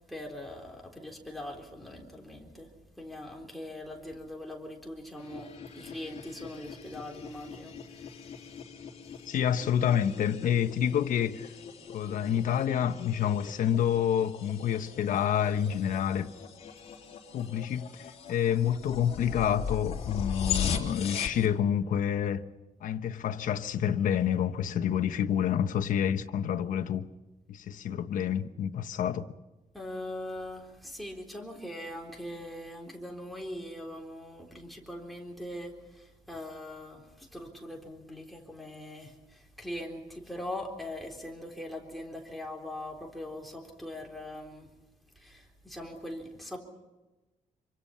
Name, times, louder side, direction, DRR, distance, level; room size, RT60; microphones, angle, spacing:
voice 1, 0.0-8.2 29.7-44.7 45.2-46.6, left 1 dB, ahead, 3.8 m, -41 dB
sound 1, 5.2-21.5, left 7 dB, 50° left, 3.3 m, -39 dB
voice 2, 9.3-11.5 11.9-16.3 17.3-17.9 18.3-22.4 22.8-27.1 27.5-29.3, left 9 dB, 75° left, 1.3 m, -28 dB
27.5 x 24.5 x 5.7 m
wide cardioid pair, 165°, 14 cm